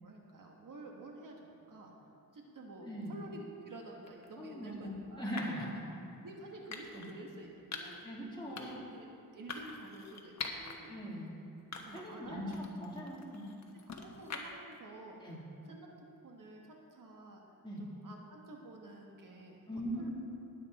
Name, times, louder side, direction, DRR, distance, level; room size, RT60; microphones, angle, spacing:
voice 1, 0.0-1.9 2.3-5.3 6.2-8.0 8.5-9.1 9.3-10.9 11.8-12.6 13.9-15.2 15.7-17.4 17.8-19.6 19.9-20.1, right 2 dB, 60° right, 0 dB, 1.5 m, -50 dB
sound 1, 4.1-4.3 5.4-5.7 6.7-7.1 7.7-8.0 8.6-8.9 9.5-10.8 11.2-11.3 11.7-12.2 12.5-14.7, left 4 dB, 50° left, 1.3 m, -44 dB
voice 2, 4.4-5.8 6.9-7.0 8.0-8.8 10.9-11.3 11.9-12.5 12.8-13.4 15.2-15.4 17.6-17.8 19.7-20.1, equal, 15° left, -6 dB, 3.2 m, -40 dB
19.5 x 8.2 x 4.2 m, 2.8 s
wide cardioid pair, 125°, 36 cm